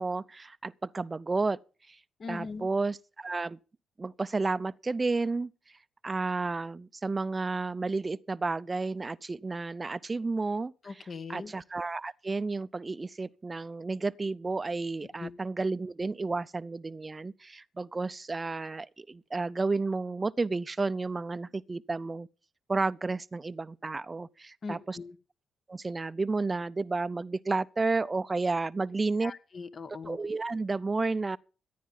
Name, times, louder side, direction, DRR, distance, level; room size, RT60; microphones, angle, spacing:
voice 1, 0.0-1.6 1.9-2.0 2.3-3.6 4.0-5.5 6.0-10.9 11.3-22.3 22.7-25.0 25.7-29.3 30.1-31.4, right 3 dB, 30° right, 0.6 m, -31 dB
voice 2, 2.2-2.7 10.8-11.5 15.2-15.3 24.6-25.2 29.2-30.2, left 4 dB, 50° left, 1.3 m, -40 dB
15.0 x 9.4 x 5.4 m
supercardioid pair, 55°, 0 cm